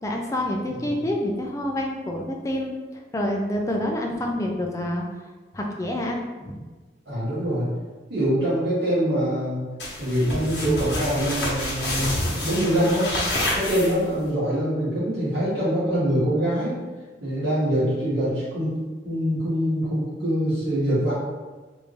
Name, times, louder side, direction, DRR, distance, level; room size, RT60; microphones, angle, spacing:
voice 1, 0.0-5.1 5.5-6.6, left 1 dB, 20° left, 1 dB, 0.4 m, -27 dB
voice 2, 7.0-7.7 8.1-9.7 10.0-13.2 13.5-16.7 17.2-18.7 19.0-21.1, equal, 65° right, -11 dB, 1.4 m, -24 dB
sound 1, 9.8-14.3, left 1 dB, 80° left, 1.0 m, -28 dB
3.4 x 2.6 x 3.2 m, 1.3 s
head